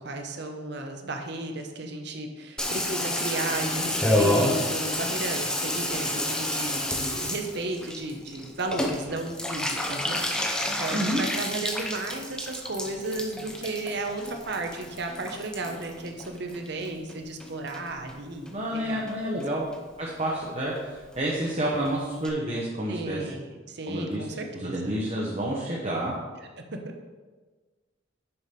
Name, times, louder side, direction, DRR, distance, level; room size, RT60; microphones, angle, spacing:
voice 1, 0.0-19.4 22.9-24.9 26.6-26.9, right 2 dB, 60° right, 4 dB, 0.9 m, -34 dB
Water tap faucet / Bathtub (filling or washing), 2.6-17.1 17.4-18.1 18.5-18.6 18.8-18.9 19.1-19.5 19.7-19.8 20.1-20.2 20.4-20.5 20.8-20.9 21.1-21.2 21.5-21.6 21.8-21.9 22.2-22.3, left 1 dB, 5° left, 0.7 m, -30 dB
voice 2, 10.9-11.2 18.5-19.6 20.0-23.2 23.9-24.2 24.5-26.1, right 1 dB, 35° right, -4 dB, 1.1 m, -29 dB
7.1 x 5.1 x 5.3 m, 1.3 s
head